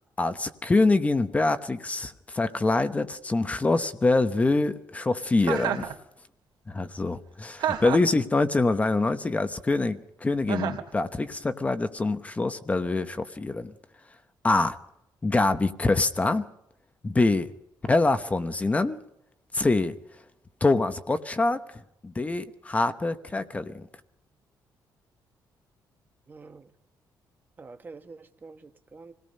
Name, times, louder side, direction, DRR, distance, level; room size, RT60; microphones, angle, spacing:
voice 1, 0.2-5.9 6.7-13.7 14.4-14.8 15.2-16.5 17.0-17.5 17.9-19.0 19.5-20.0 20.6-21.6 22.0-23.9, left 3 dB, 20° left, 10 dB, 0.9 m, -25 dB
Chuckle chortle, 5.4-5.9 7.6-8.2 10.5-10.9, right 9 dB, 70° right, 2.5 m, -29 dB
voice 2, 26.3-26.7 27.6-29.1, right 4 dB, 25° right, 8 dB, 1.2 m, -46 dB
27.0 x 18.0 x 5.4 m, 0.80 s
cardioid pair, 145°, 8 cm